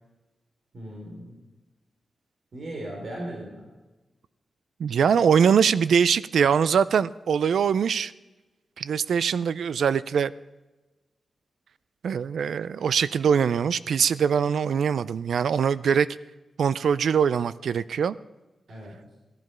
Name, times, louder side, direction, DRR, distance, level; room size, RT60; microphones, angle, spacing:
voice 1, 0.7-1.4 2.5-3.7 18.7-19.0, right 1 dB, 55° right, -1 dB, 3.6 m, -37 dB
voice 2, 4.8-8.1 8.8-10.3 12.0-16.1 16.6-18.1, right 7 dB, 80° right, 17 dB, 0.4 m, -22 dB
17.5 x 10.5 x 5.5 m, 1.1 s
wide cardioid pair, 105°, 0 cm